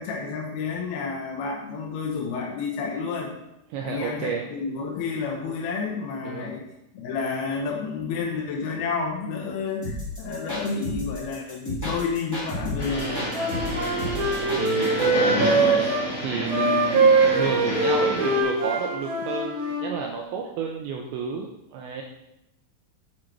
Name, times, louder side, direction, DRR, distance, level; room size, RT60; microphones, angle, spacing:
voice 1, 0.0-3.3 3.8-6.6 6.9-13.2, left 5 dB, 80° left, -1 dB, 2.3 m, -30 dB
voice 2, 3.7-4.4 6.3-6.5 13.6-14.1 14.6-22.0, right 6 dB, 85° right, 1 dB, 2.6 m, -32 dB
sound 1, 9.8-15.1, left 1 dB, 5° left, 1.8 m, -32 dB
sound 2, 12.8-18.4, left 1 dB, 30° left, 2.1 m, -30 dB
Wind instrument woodwind instrument, 13.1-16.0 16.5-19.9, right 3 dB, 50° right, 3.9 m, -23 dB
7.5 x 7.3 x 4.6 m, 0.87 s
omnidirectional pair, 5.9 m